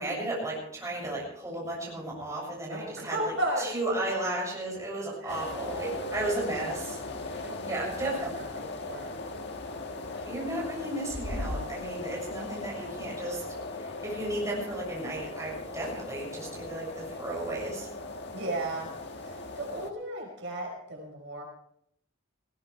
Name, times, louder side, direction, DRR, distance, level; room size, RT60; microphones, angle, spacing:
voice 1, 0.0-7.0 7.2-8.3 10.3-13.4 13.7-17.9, right 1 dB, 15° right, -3 dB, 7.2 m, -34 dB
voice 2, 2.7-3.7 5.2-6.5 7.4-9.1 18.3-18.9 19.2-21.4, right 1 dB, 65° right, 0 dB, 5.4 m, -35 dB
sound 1, 5.3-19.9, left 2 dB, 60° left, 1.6 m, -38 dB
20.0 x 17.5 x 3.4 m, 0.68 s
head